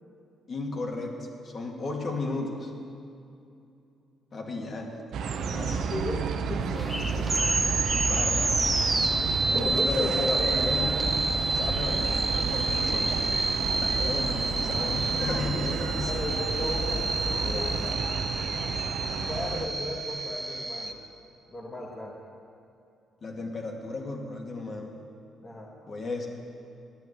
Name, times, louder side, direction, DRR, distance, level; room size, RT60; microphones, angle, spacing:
voice 1, 0.5-2.7 4.3-4.9 5.5-5.9 7.9-8.7 8.9-9.2 9.5-11.0 11.5-13.2 13.6-16.3 17.4-17.8 23.2-24.9 25.9-26.3, left 2 dB, 45° left, 0 dB, 2.4 m, -34 dB
sound 1, 5.1-19.7, right 6 dB, 70° right, 0.8 m, -32 dB
voice 2, 5.7-7.5 9.5-11.1 16.1-17.9 19.3-21.0 21.5-22.2 25.4-25.7, left 1 dB, 30° left, -3 dB, 1.8 m, -36 dB
sound 2, 6.7-17.9, left 1 dB, 10° left, 0.8 m, -38 dB
sound 3, 7.2-20.9, right 3 dB, 25° right, 1.2 m, -29 dB
12.0 x 9.3 x 8.1 m, 2.6 s
cardioid pair, 90°, 0 cm